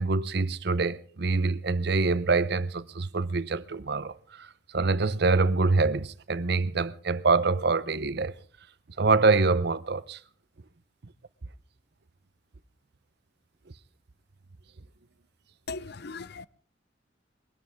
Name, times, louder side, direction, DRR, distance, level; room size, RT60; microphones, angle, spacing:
voice 1, 0.0-8.3 9.0-10.2, right 3 dB, 65° right, 0.8 m, -25 dB
voice 2, 15.7-16.5, left 4 dB, 60° left, 0.7 m, -38 dB
22.0 x 17.5 x 3.6 m
head